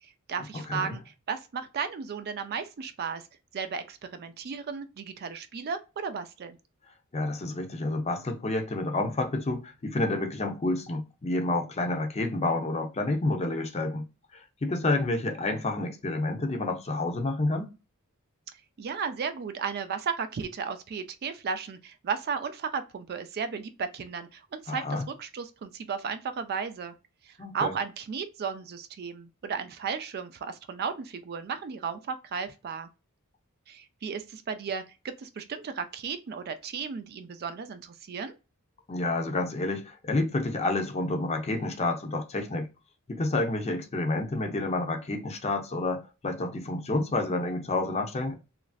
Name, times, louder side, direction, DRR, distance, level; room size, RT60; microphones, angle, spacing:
voice 1, 0.0-3.2 3.5-6.6 18.8-26.9 27.2-32.9 33.7-38.3, right 6 dB, 45° right, 0.4 m, -34 dB
voice 2, 0.5-1.0 7.1-14.1 14.3-17.7 24.7-25.0 27.4-27.7 38.9-42.7 43.1-48.3, left 2 dB, 30° left, 0.6 m, -29 dB
3.0 x 2.5 x 2.4 m
head